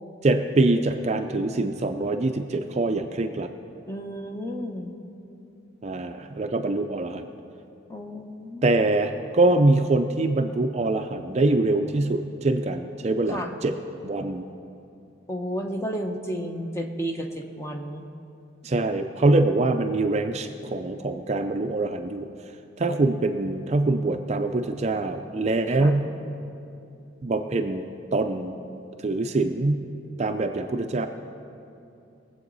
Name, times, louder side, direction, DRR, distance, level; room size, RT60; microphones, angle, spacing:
voice 1, 0.2-3.5 5.8-7.3 8.6-13.7 14.0-14.5 18.6-22.3 22.8-26.1 27.2-27.9 28.1-28.6 29.0-29.8 30.2-31.1, right 2 dB, 35° right, 7 dB, 0.4 m, -24 dB
voice 2, 3.9-5.0 7.9-8.6 13.3-13.6 15.3-18.1 25.8-26.0, equal, 15° left, 3 dB, 0.8 m, -32 dB
20.5 x 7.8 x 4.0 m, 2.6 s
head